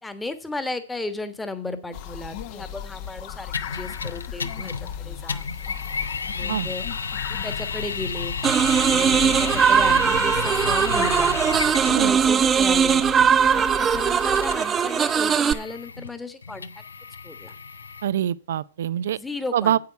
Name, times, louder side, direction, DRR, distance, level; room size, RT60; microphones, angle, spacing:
voice 1, 0.0-5.4 6.3-6.8 7.3-8.3 8.7-11.4 11.8-13.0 13.5-16.7 17.2-17.5 19.1-19.8, left 2 dB, 5° left, 1.3 m, -34 dB
sound 1, 1.9-14.6, left 9 dB, 45° left, 1.0 m, -36 dB
sound 2, 3.5-5.0 5.3-12.1 13.0-18.0, left 5 dB, 90° left, 0.8 m, -32 dB
sound 3, 8.4-15.5, right 7 dB, 20° right, 0.8 m, -20 dB
voice 2, 18.0-19.2 19.5-19.8, right 10 dB, 65° right, 0.5 m, -24 dB
8.8 x 8.1 x 5.7 m
hypercardioid pair, 120°, 0 cm